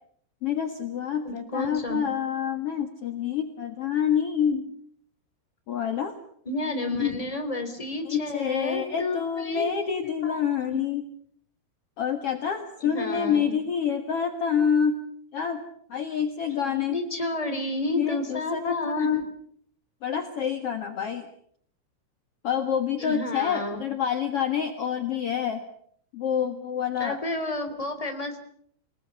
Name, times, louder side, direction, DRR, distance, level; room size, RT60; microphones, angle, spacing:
voice 1, 0.4-4.7 5.7-6.1 7.0-7.1 8.0-11.0 12.0-15.0 15.3-15.6 15.9-17.0 17.9-19.2 20.0-21.3 22.4-25.6 26.1-27.2, left 8 dB, 60° left, 6 dB, 1.6 m, -27 dB
voice 2, 1.2-2.0 6.4-10.4 10.7-10.8 12.8-13.5 16.9-19.1 23.0-23.8 27.0-28.4, left 2 dB, 10° left, 7 dB, 2.8 m, -31 dB
29.5 x 19.5 x 6.9 m, 0.64 s
omnidirectional pair, 5.2 m